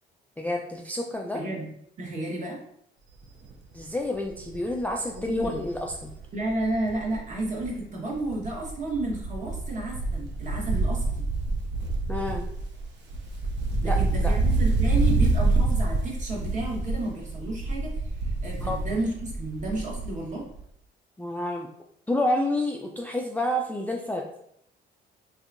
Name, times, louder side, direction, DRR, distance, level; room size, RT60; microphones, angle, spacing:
voice 1, 0.4-1.4 3.7-6.1 12.1-12.5 13.8-14.3 18.6-18.8 21.2-21.7 22.1-24.3, left 1 dB, 10° left, 0 dB, 0.3 m, -29 dB
voice 2, 1.3-1.7 2.0-2.6 5.1-5.6 6.3-11.3 13.8-20.4, right 2 dB, 40° right, -2 dB, 1.1 m, -32 dB
Wind, 3.2-3.5 3.9-4.0 4.3-7.8 8.1-20.3 20.5-20.6, right 3 dB, 65° right, 0.5 m, -27 dB
3.3 x 2.7 x 2.5 m, 0.70 s
cardioid pair, 90°, 20 cm